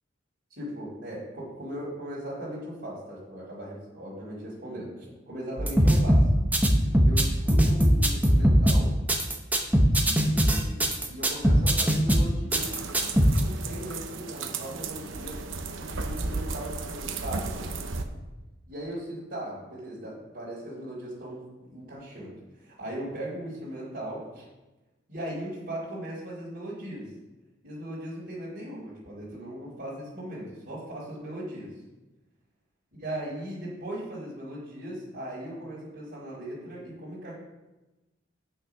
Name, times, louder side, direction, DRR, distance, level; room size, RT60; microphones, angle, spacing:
voice 1, 0.5-6.3 7.0-8.9 10.0-12.9 13.4-15.4 15.8-17.9 18.7-24.4 25.1-27.1 27.6-31.7 33.0-37.3, right 1 dB, 55° right, -11 dB, 3.6 m, -38 dB
sound 1, 5.6-13.4, equal, 10° right, 0.9 m, -21 dB
sound 2, 12.5-18.1, right 4 dB, 85° right, 0.9 m, -34 dB
8.5 x 6.7 x 5.7 m, 1.1 s
head